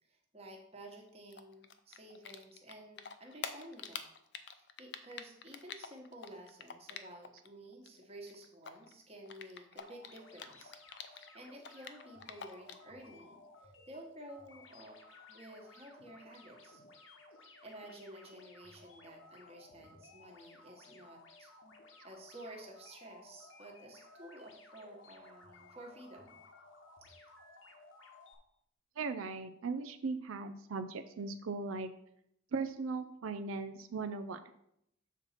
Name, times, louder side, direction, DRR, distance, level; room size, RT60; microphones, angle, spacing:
voice 1, 0.0-4.0 4.5-10.7 11.1-16.8 17.6-21.5 22.0-26.4 27.0-27.1, right 1 dB, 30° right, 1 dB, 1.2 m, -52 dB
Typing, 1.3-7.5 7.7-11.3 11.6-12.9, left 7 dB, 55° left, 0.5 m, -46 dB
sound 1, 9.8-28.3, left 2 dB, 75° left, 1.1 m, -58 dB
voice 2, 29.0-31.9 32.5-34.4, right 4 dB, 90° right, 8 dB, 0.5 m, -38 dB
7.1 x 4.1 x 5.7 m, 0.75 s
head